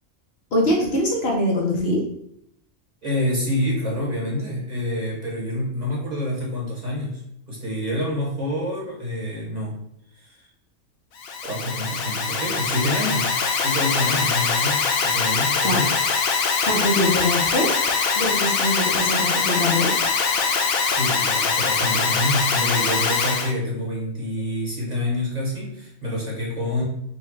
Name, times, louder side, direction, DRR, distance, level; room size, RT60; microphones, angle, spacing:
voice 1, 0.5-2.0 15.6-15.8 16.7-17.7 18.1-19.9, left 1 dB, 50° left, -3 dB, 1.0 m, -23 dB
voice 2, 3.0-7.2 7.5-9.7 10.2-10.5 11.4-13.3 13.6-15.9 20.9-26.8, left 1 dB, 30° right, -4 dB, 1.2 m, -27 dB
Alarm, 11.2-23.5, left 5 dB, 90° left, 1.1 m, -22 dB
4.1 x 2.3 x 4.6 m, 0.73 s
omnidirectional pair, 1.4 m